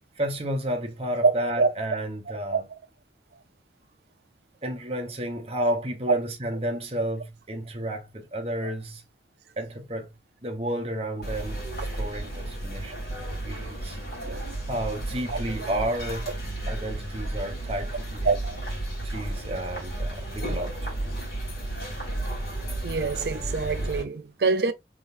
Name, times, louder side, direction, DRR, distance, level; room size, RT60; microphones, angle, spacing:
voice 1, 0.2-2.6 4.6-9.0 9.6-10.1 10.4-12.9 13.3-14.0 14.7-16.3 16.7-18.3 19.0-21.0, right 1 dB, 35° right, 1.0 m, -31 dB
voice 2, 1.2-1.7 2.5-2.6 6.1-6.2 8.6-8.7 14.2-14.6 15.3-15.7 16.3-16.4 18.2-18.7 20.4-20.6 22.8-24.7, right 4 dB, 65° right, 0.5 m, -26 dB
sound 1, 11.2-24.0, right 1 dB, 55° left, 2.1 m, -33 dB
3.8 x 3.5 x 2.6 m
head